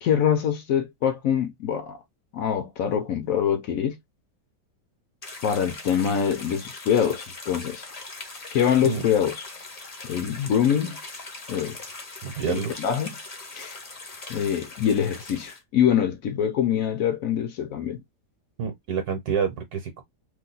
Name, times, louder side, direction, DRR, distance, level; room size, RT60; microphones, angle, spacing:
voice 1, 0.0-2.0 2.3-4.0 5.4-7.8 8.5-9.4 10.1-11.0 11.5-11.9 12.5-13.1 13.5-13.8 14.3-18.0, left 8 dB, 70° left, 0.9 m, -24 dB
sound 1, 5.2-15.6, left 3 dB, 35° left, 0.6 m, -40 dB
voice 2, 12.2-12.7 18.6-20.0, right 6 dB, 70° right, 1.2 m, -28 dB
2.9 x 2.2 x 3.8 m
omnidirectional pair, 1.8 m